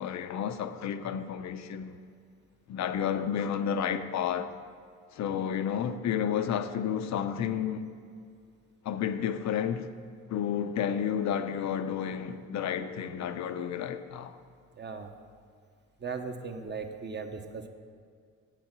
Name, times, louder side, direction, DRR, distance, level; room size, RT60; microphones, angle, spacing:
voice 1, 0.0-2.0 2.7-4.5 5.1-7.8 8.8-9.9 10.3-14.4, left 8 dB, 65° left, 0.7 m, -31 dB
voice 2, 14.8-15.1 16.0-17.7, right 5 dB, 35° right, 1.0 m, -38 dB
9.1 x 8.2 x 6.0 m
cardioid pair, 90°, 30 cm